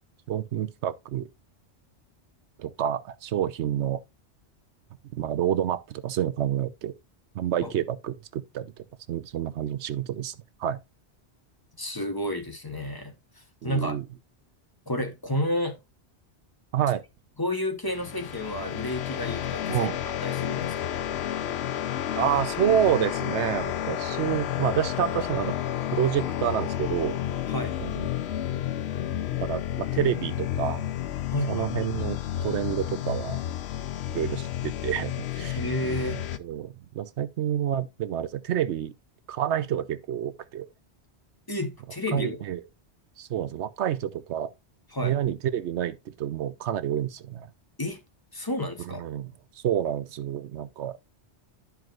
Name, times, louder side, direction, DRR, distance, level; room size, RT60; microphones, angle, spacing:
voice 1, 0.3-1.3 2.6-4.0 5.1-6.9 7.3-10.8 13.6-14.0 16.7-17.0 19.7-20.0 22.2-25.5 25.9-27.2 27.8-28.1 29.4-30.8 31.5-33.4 34.1-35.6 36.4-38.9 39.3-40.7 42.1-42.6 43.2-44.5 45.0-47.5 48.9-49.3 49.6-51.0, right 10 dB, 80° right, 1.0 m, -28 dB
voice 2, 11.8-14.0 14.9-15.8 17.4-19.9 20.2-20.9 27.5-27.8 31.3-31.7 35.5-36.3 41.5-42.4 44.9-45.1 47.8-48.0 48.3-49.0, left 1 dB, 20° left, 0.9 m, -31 dB
sound 1, 17.9-36.4, left 11 dB, 70° left, 0.9 m, -31 dB
12.5 x 4.7 x 2.4 m
omnidirectional pair, 1.2 m